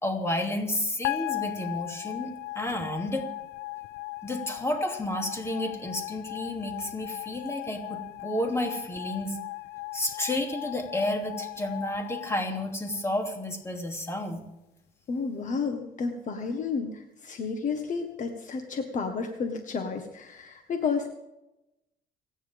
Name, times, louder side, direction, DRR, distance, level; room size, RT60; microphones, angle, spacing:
voice 1, 0.0-3.3 4.2-9.4 9.9-14.4, left 1 dB, 15° left, 2 dB, 3.0 m, -31 dB
sound 1, 1.0-13.3, left 19 dB, 80° left, 0.5 m, -37 dB
voice 2, 15.1-21.1, left 5 dB, 50° left, 5 dB, 1.6 m, -31 dB
29.5 x 10.0 x 3.6 m, 0.94 s
cardioid pair, 110°, 17 cm